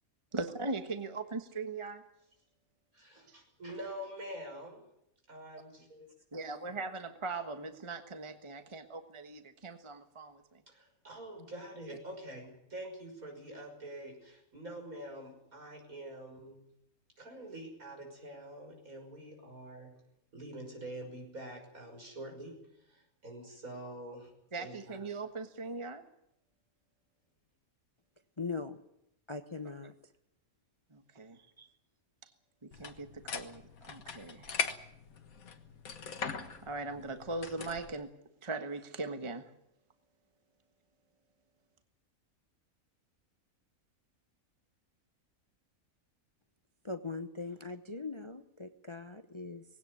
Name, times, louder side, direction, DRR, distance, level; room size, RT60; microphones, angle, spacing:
voice 1, 0.3-2.0 6.3-10.6 24.5-26.0 30.9-31.5 32.2-32.3 32.6-34.6 36.6-38.1 38.4-39.5, right 3 dB, 20° right, 7 dB, 1.4 m, -40 dB
voice 2, 2.9-4.8 5.3-6.1 10.7-16.7 17.2-20.0 20.3-24.3 24.6-25.0, right 1 dB, 70° right, 3 dB, 6.4 m, -46 dB
voice 3, 28.4-28.8 29.3-29.9 31.6-31.7 46.8-49.6, left 4 dB, 25° left, 9 dB, 0.9 m, -40 dB
sound 1, 32.7-37.9, left 6 dB, 75° left, 1.9 m, -40 dB
20.0 x 17.5 x 9.7 m, 0.78 s
omnidirectional pair, 1.5 m